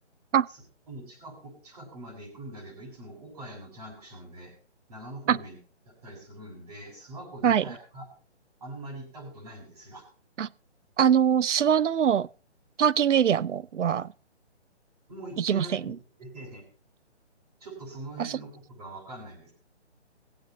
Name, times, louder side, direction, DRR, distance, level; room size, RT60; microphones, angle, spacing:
voice 1, 0.9-4.5 4.9-5.6 5.8-8.1 8.6-10.0 15.1-15.9 16.2-16.6 17.6-19.5, right 1 dB, 35° right, 6.3 m, -43 dB
voice 2, 11.0-12.3 12.8-14.1 15.4-15.8 18.2-18.4, right 8 dB, 85° right, 0.6 m, -23 dB
20.5 x 7.9 x 4.0 m
hypercardioid pair, 175°, 35 cm